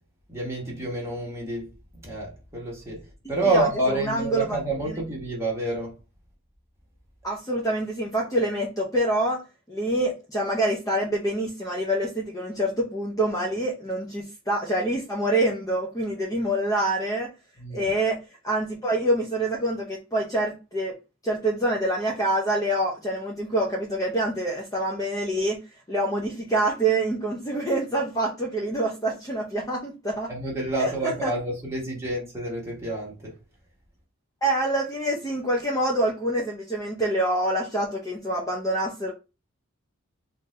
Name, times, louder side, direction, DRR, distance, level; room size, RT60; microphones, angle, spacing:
voice 1, 0.3-1.7 2.0-3.0 3.3-5.9 17.6-17.8 30.3-33.3, right 2 dB, 10° right, 1.4 m, -28 dB
voice 2, 3.4-4.6 4.9-5.0 7.2-9.4 9.7-17.3 17.7-18.2 18.4-20.9 21.2-25.6 25.9-30.3 30.8-31.3 34.4-39.1, right 1 dB, 15° left, 0.7 m, -26 dB
3.8 x 2.7 x 3.2 m
head